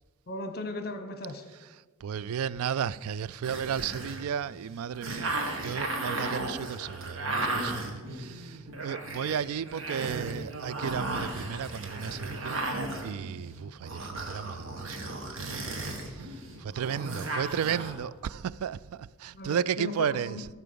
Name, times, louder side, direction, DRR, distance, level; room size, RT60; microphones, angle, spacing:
voice 1, 0.3-1.4 17.0-17.3 19.3-20.4, left 2 dB, 45° left, 1.1 m, -37 dB
voice 2, 2.0-12.7 13.0-15.0 15.4-20.5, right 8 dB, 85° right, 0.3 m, -34 dB
sound 1, 3.4-17.9, right 2 dB, 65° right, 1.7 m, -35 dB
16.0 x 5.8 x 6.9 m
head